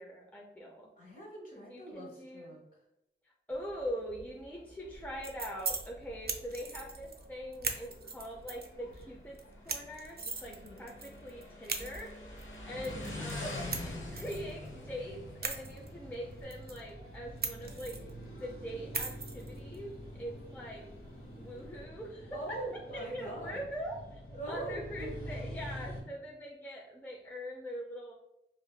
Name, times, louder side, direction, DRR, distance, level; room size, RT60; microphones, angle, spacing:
voice 1, 0.0-0.9 1.5-2.6 3.5-9.4 9.6-12.2 12.6-18.0 18.4-20.9 21.4-22.4 22.9-24.2 24.5-28.1, equal, 10° left, -2 dB, 0.4 m, -43 dB
voice 2, 1.0-2.6 10.4-10.8 13.3-13.5 21.2-21.8 22.3-23.6 24.3-25.3, right 2 dB, 45° left, -2 dB, 1.2 m, -43 dB
Motorcycle, 3.5-16.4, left 2 dB, 70° left, 0.7 m, -47 dB
sound 1, 4.9-21.8, right 4 dB, 50° right, 0.5 m, -43 dB
sound 2, 12.7-26.0, equal, 90° left, 1.1 m, -47 dB
3.4 x 2.4 x 2.2 m, 0.89 s
wide cardioid pair, 50°, 21 cm